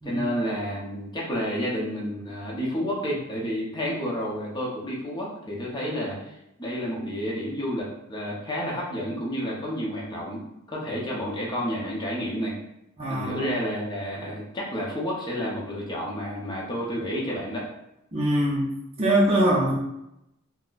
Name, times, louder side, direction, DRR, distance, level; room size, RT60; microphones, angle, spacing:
voice 1, 0.0-6.3 6.6-10.4 10.7-12.5 13.1-17.6, equal, 20° left, -4 dB, 0.7 m, -30 dB
voice 2, 13.0-13.5 18.1-18.7 19.0-19.7, right 1 dB, 30° right, -5 dB, 0.6 m, -23 dB
4.1 x 2.1 x 2.4 m, 0.86 s
head